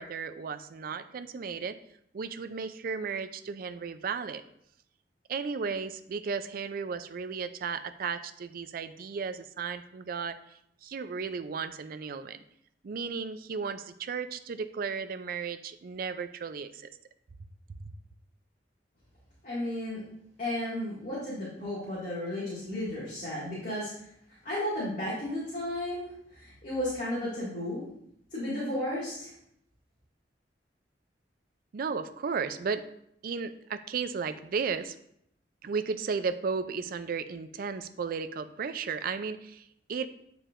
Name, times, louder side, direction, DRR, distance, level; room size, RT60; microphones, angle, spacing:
voice 1, 0.0-1.8 2.1-4.4 5.3-10.4 10.8-12.4 12.8-16.9 17.8-17.9 31.7-32.9 33.2-35.0 35.6-40.1, right 5 dB, 55° right, 11 dB, 0.4 m, -34 dB
voice 2, 19.4-20.0 20.4-23.9 24.4-26.1 26.3-27.8 28.3-29.3, left 1 dB, 50° left, -10 dB, 2.1 m, -33 dB
8.7 x 4.6 x 2.5 m, 0.72 s
head